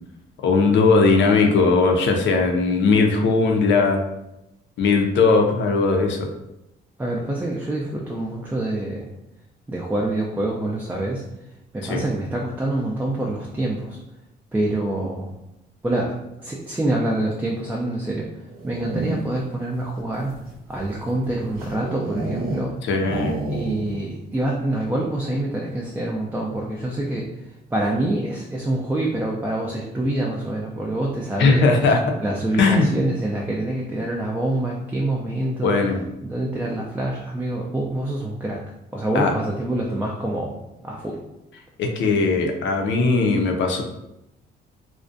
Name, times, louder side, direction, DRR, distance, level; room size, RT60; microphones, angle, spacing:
voice 1, 0.4-4.0 4.8-6.3 11.8-12.0 22.8-23.3 31.4-32.0 32.5-32.9 35.6-36.1 39.1-39.3 41.8-43.8, left 4 dB, 65° left, 3 dB, 0.5 m, -18 dB
voice 2, 7.0-9.1 9.7-11.2 11.7-14.0 14.5-15.3 15.8-18.3 18.6-20.3 20.7-22.7 23.5-27.3 27.7-31.7 32.2-35.8 36.2-38.6 38.9-40.5 40.8-41.2, right 1 dB, 10° right, -2 dB, 0.3 m, -26 dB
sound 1, 18.5-19.5 20.1-22.7 23.0-24.1 24.3-24.4 24.7-25.1, right 2 dB, 50° right, 0.7 m, -30 dB
2.4 x 2.1 x 2.5 m, 0.89 s
cardioid pair, 90°, 20 cm